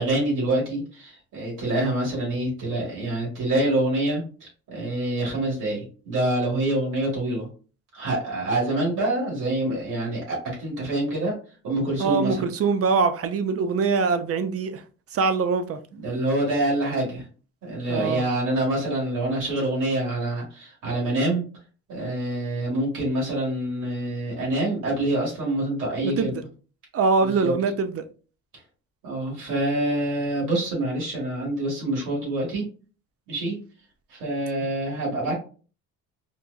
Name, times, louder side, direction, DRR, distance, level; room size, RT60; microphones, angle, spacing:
voice 1, 0.0-7.5 7.9-11.3 11.6-12.4 15.9-17.3 17.6-21.5 21.9-26.3 27.2-27.5 29.0-32.7 33.3-33.6 34.1-35.3, right 1 dB, 85° right, 1.8 m, -26 dB
voice 2, 12.0-14.8 15.1-15.8 17.9-18.2 26.0-26.4 26.9-28.1, right 4 dB, 50° right, 0.6 m, -23 dB
4.3 x 2.5 x 2.3 m
cardioid pair, 90°, 30 cm